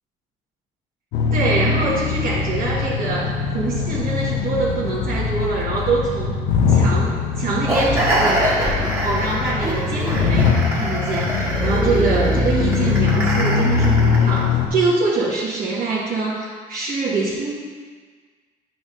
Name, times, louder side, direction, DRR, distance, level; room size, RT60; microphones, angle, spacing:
sound 1, 1.1-14.7, left 5 dB, 85° left, 0.7 m, -21 dB
voice 1, 1.3-6.3 6.7-17.5, right 3 dB, 60° right, -7 dB, 1.2 m, -24 dB
sound 2, 7.7-14.4, right 1 dB, 15° right, 1.7 m, -25 dB
8.3 x 6.1 x 2.5 m, 1.5 s
cardioid pair, 110°, 17 cm